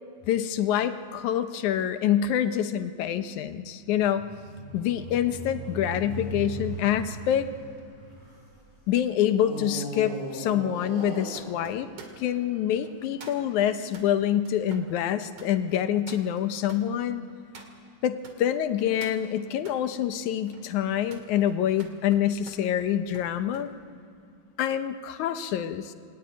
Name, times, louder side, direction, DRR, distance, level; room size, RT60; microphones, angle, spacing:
voice 1, 0.3-4.3 4.7-7.5 8.9-11.9 12.2-17.2 18.0-23.7 24.6-25.9, left 10 dB, 80° left, 10 dB, 2.3 m, -26 dB
sound 1, 3.9-8.6 9.3-12.8, right 1 dB, 70° right, 9.1 m, -39 dB
sound 2, 7.8-18.4 18.8-19.8 20.3-23.7 24.0-24.4, right 4 dB, 55° right, 3.2 m, -51 dB
26.5 x 19.5 x 9.5 m, 2.3 s
omnidirectional pair, 3.5 m